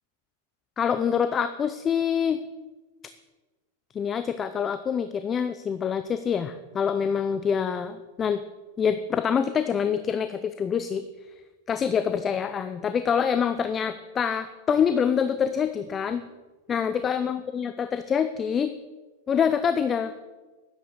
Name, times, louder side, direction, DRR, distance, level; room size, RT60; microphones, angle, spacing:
voice 1, 0.8-2.4 3.9-8.4 8.8-11.1 11.7-16.2 16.7-18.7 19.3-20.1, left 7 dB, 25° left, 11 dB, 0.7 m, -26 dB
11.5 x 10.5 x 6.8 m, 1.2 s
hypercardioid pair, 95°, 0 cm